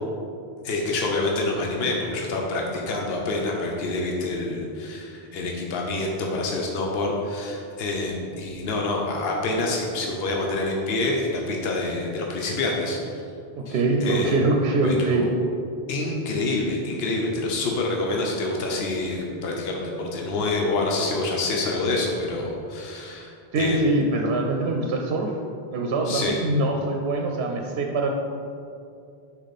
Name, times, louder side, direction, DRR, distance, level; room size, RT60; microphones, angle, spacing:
voice 1, 0.6-13.0 13.7-14.4 14.8-15.3 15.9-23.8 26.0-26.4, left 2 dB, 70° left, -1 dB, 1.0 m, -27 dB
voice 2, 13.5-15.3 23.5-25.3 25.7-28.1, right 2 dB, 80° right, 2 dB, 0.9 m, -23 dB
6.4 x 4.9 x 4.1 m, 2.5 s
omnidirectional pair, 1.1 m